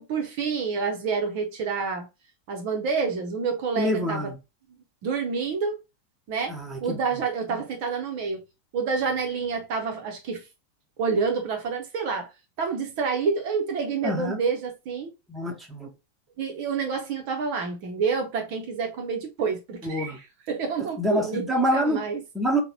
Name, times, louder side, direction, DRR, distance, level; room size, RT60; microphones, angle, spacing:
voice 1, 0.0-2.1 2.5-4.3 5.0-5.8 6.3-8.4 8.7-10.4 11.0-12.3 12.6-15.1 16.4-22.2, right 5 dB, 45° right, 0.6 m, -28 dB
voice 2, 3.8-4.4 6.5-7.0 7.5-7.6 14.0-14.4 15.3-15.9 19.8-20.2 21.0-22.0 22.3-22.6, equal, ahead, 1.0 m, -26 dB
3.8 x 2.1 x 2.7 m
figure-of-eight pair, 90°, 0 cm